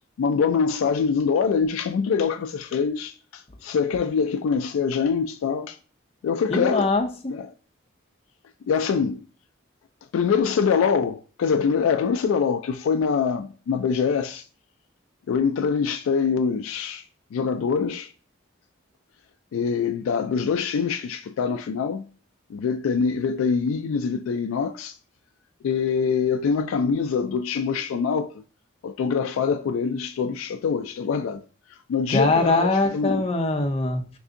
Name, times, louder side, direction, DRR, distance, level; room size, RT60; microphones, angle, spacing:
voice 1, 0.2-5.8 6.2-6.9 7.3-7.5 8.7-9.3 10.1-14.4 15.3-17.0 17.3-18.1 19.5-22.1 22.5-24.9 25.6-28.3 28.8-31.4 31.9-33.3, left 6 dB, 90° left, 0.3 m, -24 dB
voice 2, 6.5-7.3 32.1-34.1, left 2 dB, 30° left, 0.5 m, -22 dB
3.3 x 2.6 x 3.7 m
head